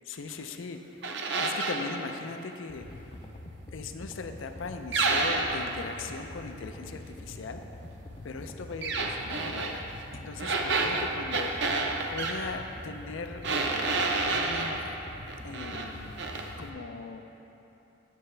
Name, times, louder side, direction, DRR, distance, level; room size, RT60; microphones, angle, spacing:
voice 1, 0.1-1.0 1.4-2.9 3.7-7.6 8.2-11.7 12.1-13.4 14.3-14.8 15.4-16.1 16.6-17.2, left 4 dB, 85° left, 7 dB, 0.5 m, -39 dB
sound 1, 1.0-1.9 4.9-5.7 8.8-9.7 10.4-12.4 13.4-14.8 15.3-15.9 16.2-16.5, right 3 dB, 60° right, 0.6 m, -29 dB
sound 2, 2.7-16.7, left 1 dB, 30° left, 0.4 m, -45 dB
9.3 x 6.7 x 3.3 m, 2.9 s
head